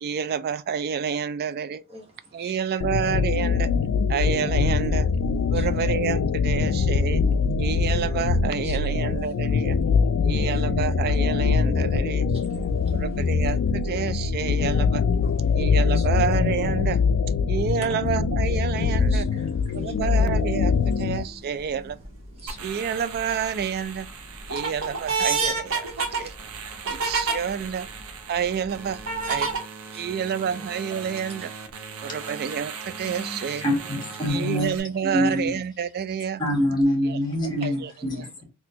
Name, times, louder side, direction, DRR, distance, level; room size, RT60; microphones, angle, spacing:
voice 1, 0.0-1.8 2.3-3.7 4.1-5.1 5.5-7.2 7.6-9.8 10.2-12.3 12.9-15.0 15.5-17.0 17.5-19.3 19.7-22.0 22.6-24.1 24.5-25.9 26.1-26.3 26.9-27.9 28.3-29.0 29.3-29.5 29.9-31.5 32.0-33.6 34.3-36.4 37.0-37.2 37.6-37.9, right 7 dB, 45° right, 0.3 m, -29 dB
voice 2, 1.9-2.5 5.5-5.7 8.5-8.8 9.1-9.2 10.2-10.5 12.3-13.0 15.2-15.6 15.9-16.1 18.8-21.9 22.3-22.8 26.0-27.4 29.9-30.6 31.0-31.2 33.0-34.1 37.6-37.7 38.1-38.3, equal, 30° right, 1.0 m, -46 dB
sound 1, 2.8-21.2, left 5 dB, 70° left, 0.3 m, -23 dB
sound 2, 20.9-21.3 21.9-22.5 23.0-23.6 24.1-27.4 28.0-28.1 29.1-29.6, right 4 dB, 65° right, 0.9 m, -27 dB
sound 3, 22.5-34.8, right 6 dB, 90° right, 0.6 m, -40 dB
voice 3, 33.6-34.7 35.1-35.5 36.4-38.4, left 1 dB, 20° left, 1.5 m, -25 dB
4.2 x 2.2 x 2.7 m
head